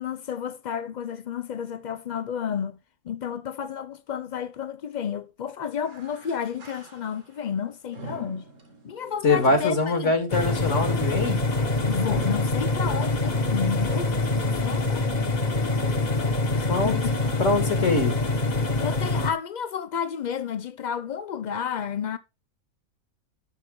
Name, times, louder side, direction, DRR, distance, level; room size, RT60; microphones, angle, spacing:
voice 1, 0.0-2.8 3.0-8.5 8.8-10.1 11.9-15.0 16.5-17.3 17.7-17.9 18.8-22.2, left 7 dB, 85° left, 0.4 m, -31 dB
sound 1, 5.8-7.4 7.9-13.2 13.7-13.8 14.6-14.7, right 2 dB, 65° right, 2.2 m, -41 dB
voice 2, 9.2-11.4 16.7-17.0 17.4-18.2, left 3 dB, 60° left, 2.1 m, -23 dB
sound 2, 10.3-19.3, left 2 dB, 30° left, 1.2 m, -25 dB
11.5 x 6.0 x 3.5 m
omnidirectional pair, 1.4 m